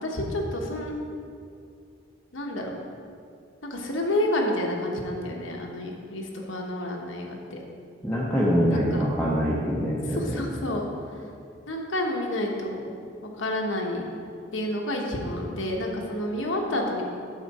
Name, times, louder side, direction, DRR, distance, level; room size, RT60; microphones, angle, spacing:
voice 1, 0.0-0.9 2.3-2.8 3.6-7.6 8.7-9.1 10.1-10.9 11.1-11.3 11.7-12.8 13.4-14.0 14.5-17.0, left 1 dB, 80° left, 0 dB, 1.2 m, -29 dB
voice 2, 8.0-10.4, equal, 5° left, -8 dB, 0.9 m, -24 dB
9.1 x 6.9 x 4.2 m, 2.4 s
head